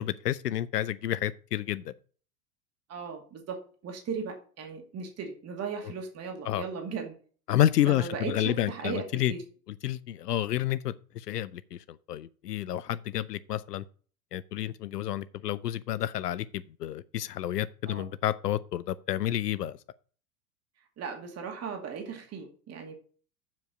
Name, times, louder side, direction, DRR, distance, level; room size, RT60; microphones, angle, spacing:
voice 1, 0.0-1.9 6.5-6.6 7.5-9.3 9.8-11.8 12.1-13.8 14.3-19.8, left 12 dB, 85° left, 0.6 m, -30 dB
voice 2, 2.9-7.1 7.9-9.4 17.9-18.0 21.0-22.9, right 6 dB, 30° right, 2.3 m, -37 dB
7.3 x 5.3 x 7.0 m
hypercardioid pair, 90°, 46 cm